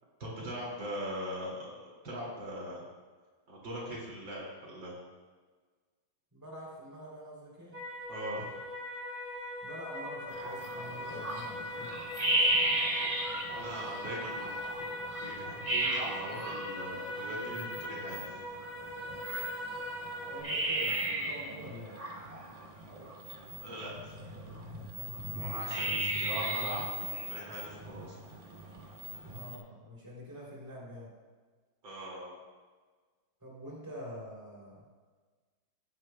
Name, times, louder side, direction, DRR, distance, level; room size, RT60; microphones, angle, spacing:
voice 1, 0.2-1.7 2.0-2.8 3.5-5.0 8.1-8.4 13.5-14.6 15.2-18.2 23.6-24.1 25.3-28.1 31.8-32.3, equal, 65° right, -4 dB, 3.2 m, -41 dB
voice 2, 6.3-7.8 9.6-12.0 20.2-22.0 29.2-31.1 33.4-34.8, equal, 10° right, -5 dB, 2.9 m, -46 dB
sound 1, 7.7-20.4, left 1 dB, 20° left, 2.4 m, -40 dB
sound 2, 10.3-29.6, right 1 dB, 30° right, 0.6 m, -36 dB
15.0 x 10.5 x 2.2 m, 1.4 s
omnidirectional pair, 2.2 m